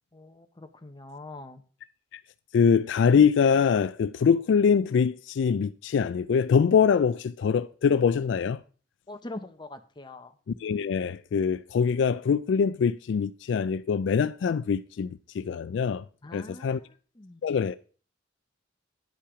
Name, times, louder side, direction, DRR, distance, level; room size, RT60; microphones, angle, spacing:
voice 1, 0.1-1.6 9.1-10.3 16.2-17.4, left 2 dB, 25° left, 0.8 m, -43 dB
voice 2, 2.5-8.6 10.6-16.0 16.3-16.8 17.4-17.8, left 6 dB, 65° left, 0.3 m, -23 dB
10.5 x 5.6 x 4.9 m
head